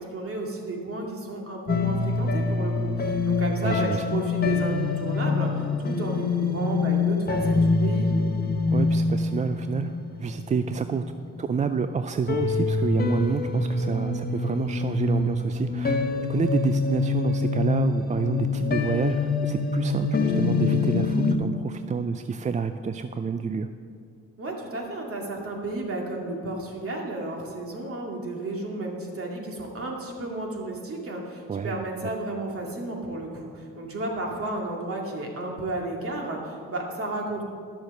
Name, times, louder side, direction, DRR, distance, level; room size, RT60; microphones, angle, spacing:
voice 1, 0.0-8.1 24.4-37.4, right 2 dB, 50° right, 0 dB, 2.3 m, -32 dB
sound 1, 1.7-11.9 12.3-21.4, left 3 dB, 30° left, 1.0 m, -25 dB
voice 2, 3.6-4.0 8.7-11.0 11.4-23.7 31.5-31.8, right 5 dB, 25° right, 9 dB, 0.4 m, -28 dB
11.5 x 7.0 x 6.5 m, 2.3 s
cardioid pair, 90°, 30 cm